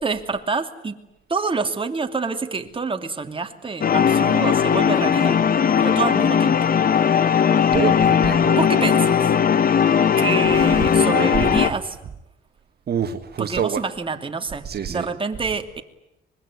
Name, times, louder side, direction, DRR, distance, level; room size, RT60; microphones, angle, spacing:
voice 1, 0.0-1.0 1.3-5.4 5.8-6.6 8.5-9.3 10.2-12.0 13.4-14.6 14.9-15.8, right 4 dB, 25° right, 6 dB, 2.6 m, -27 dB
sound 1, 3.8-11.7, left 7 dB, 45° left, 1.2 m, -18 dB
voice 2, 7.7-8.6 9.5-9.6 10.5-11.6 12.9-13.8 14.6-15.1, right 8 dB, 55° right, 7 dB, 1.6 m, -27 dB
24.5 x 21.5 x 9.7 m, 0.90 s
cardioid pair, 90°, 20 cm